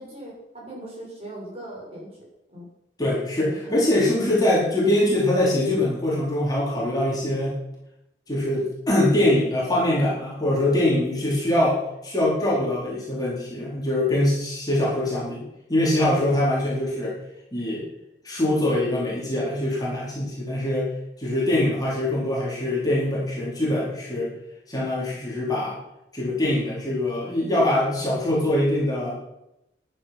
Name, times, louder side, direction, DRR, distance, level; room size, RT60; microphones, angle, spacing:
voice 1, 0.0-2.1 2.5-2.6 3.4-3.8, right 1 dB, 35° right, -4 dB, 7.0 m, -39 dB
voice 2, 3.0-7.6 8.3-15.4 15.7-17.1 17.5-17.8 18.2-20.9 21.2-24.3 24.7-25.8 26.1-29.1, left 1 dB, 20° left, -5 dB, 4.3 m, -23 dB
14.5 x 10.5 x 6.0 m, 0.86 s
head